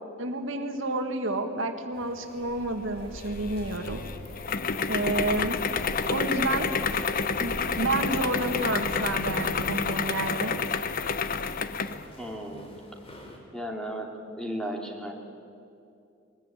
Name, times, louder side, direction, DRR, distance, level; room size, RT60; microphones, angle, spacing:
voice 1, 0.2-4.0 4.9-5.6 6.1-6.7 7.4-10.5, right 2 dB, 75° right, 6 dB, 1.8 m, -30 dB
sound 1, 1.9-13.4, left 1 dB, 30° left, 3.3 m, -51 dB
sound 2, 2.3-10.9, equal, 40° right, 3.1 m, -44 dB
sound 3, 3.2-12.0, left 5 dB, 45° left, 0.8 m, -29 dB
voice 2, 12.2-12.7 13.5-14.1 14.3-15.1, equal, 5° left, 1 dB, 2.5 m, -34 dB
21.5 x 20.0 x 9.0 m, 2.5 s
head